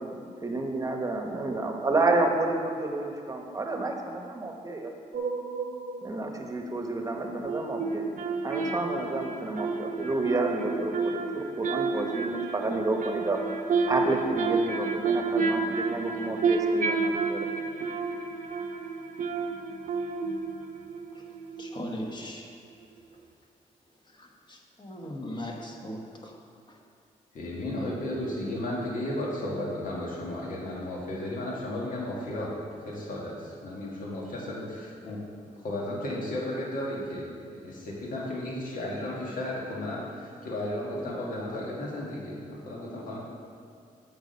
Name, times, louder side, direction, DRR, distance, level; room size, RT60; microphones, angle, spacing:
voice 1, 0.0-4.9 6.0-8.1 8.4-13.4 13.9-17.5, right 2 dB, 25° right, 3 dB, 1.0 m, -30 dB
sound 1, 5.1-6.3 7.4-22.0 22.2-22.3, right 4 dB, 65° right, 0.8 m, -30 dB
voice 2, 21.6-22.5 23.1-23.2 24.0-26.4 26.7-26.8, left 1 dB, 30° left, 1 dB, 1.2 m, -39 dB
voice 3, 27.3-32.5 32.8-35.2 35.5-43.2, left 1 dB, 70° left, -3 dB, 1.7 m, -34 dB
8.2 x 6.3 x 5.3 m, 2.3 s
cardioid pair, 105°, 14 cm